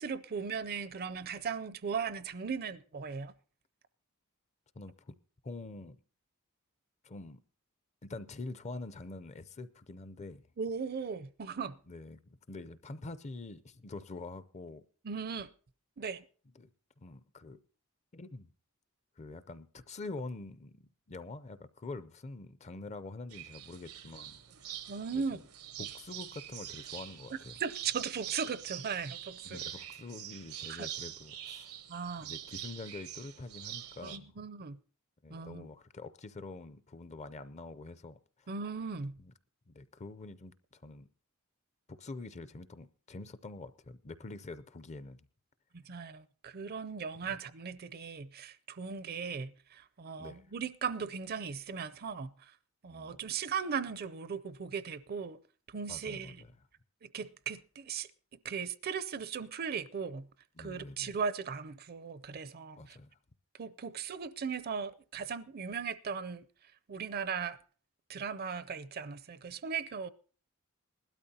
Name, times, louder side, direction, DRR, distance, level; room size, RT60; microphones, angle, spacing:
voice 1, 0.0-3.3 10.6-11.8 15.0-15.5 16.0-16.2 24.9-25.4 27.6-29.6 30.7-30.9 31.9-32.3 34.0-34.8 35.3-35.7 38.5-39.2 45.9-52.3 52.8-55.4 55.7-56.4 57.0-58.1 58.4-60.3 60.6-63.0 63.6-66.4 66.9-67.6 68.1-70.1, right 6 dB, 45° right, 0.5 m, -38 dB
voice 2, 4.8-5.1 5.4-6.0 7.0-7.4 8.0-10.5 11.9-14.8 16.5-16.7 17.0-17.6 18.1-18.5 19.2-24.4 24.7-24.8 25.1-25.4 25.8-27.6 29.4-31.7 32.2-34.5 35.2-38.5 39.2-39.3 39.7-41.1 41.9-45.3 47.2-47.4 50.2-50.4 52.9-53.2 55.9-56.6 60.5-61.2 62.8-63.2, left 3 dB, 30° left, 0.5 m, -46 dB
sound 1, 23.3-34.2, right 11 dB, 85° right, 0.9 m, -45 dB
19.5 x 12.5 x 2.8 m
head